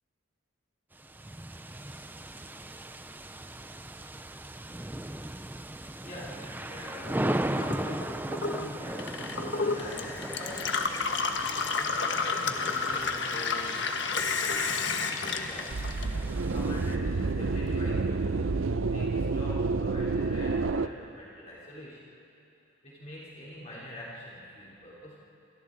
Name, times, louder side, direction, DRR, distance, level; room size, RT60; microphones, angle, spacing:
sound 1, 0.9-17.0, right 1 dB, 10° right, 0.5 m, -38 dB
voice 1, 6.0-7.4 8.0-8.3 8.8-15.9 16.5-18.2 18.9-22.1 22.8-25.2, equal, 35° left, -7 dB, 3.6 m, -44 dB
Gurgling / Water tap faucet / Sink (filling or washing), 7.0-16.6 16.9-17.7, left 4 dB, 60° left, 1.3 m, -31 dB
sound 2, 15.7-20.9, right 3 dB, 75° right, 0.7 m, -29 dB
28.5 x 26.5 x 4.0 m, 2.8 s
head